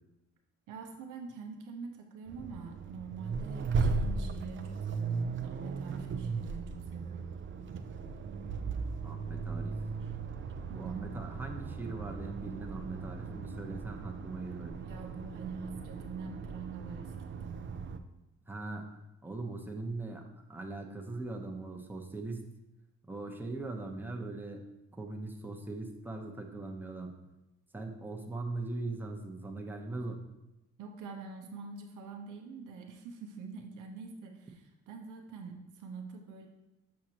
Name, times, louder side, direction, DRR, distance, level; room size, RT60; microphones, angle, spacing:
voice 1, 0.7-7.3 10.7-11.0 14.8-17.7 30.8-36.5, right 5 dB, 85° right, 3 dB, 0.8 m, -45 dB
Accelerating revving vroom, 2.3-18.0, right 4 dB, 40° right, 0.5 m, -37 dB
voice 2, 9.0-9.8 10.7-14.7 18.5-18.9 19.2-20.2 20.5-22.5 23.1-24.6 24.9-27.1 27.7-30.2, right 2 dB, 5° right, 1 dB, 0.8 m, -40 dB
6.4 x 6.0 x 2.9 m, 0.96 s
cardioid pair, 90°, 30 cm